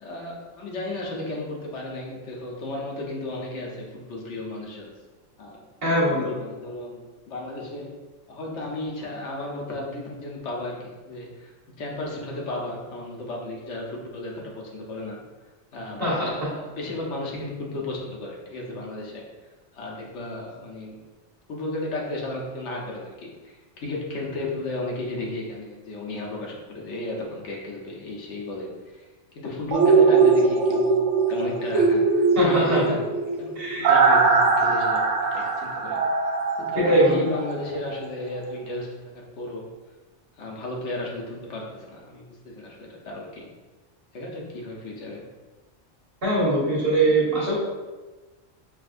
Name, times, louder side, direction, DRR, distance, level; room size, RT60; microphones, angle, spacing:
voice 1, 0.0-4.9 5.4-7.9 8.3-11.5 11.8-15.2 15.7-19.2 19.7-21.0 21.5-29.1 29.3-31.0 31.3-33.0 33.4-36.0 36.6-39.7 40.4-43.5 44.1-45.2, left 2 dB, 70° left, -2 dB, 1.1 m, -34 dB
voice 2, 5.8-6.3 16.0-16.5 32.3-32.8 33.5-33.9 36.7-37.2 46.2-47.6, right 1 dB, 50° right, -7 dB, 1.5 m, -22 dB
sound 1, 29.7-37.6 37.9-38.0, right 4 dB, 80° right, 0.9 m, -21 dB
5.9 x 2.5 x 2.5 m, 1.2 s
omnidirectional pair, 1.3 m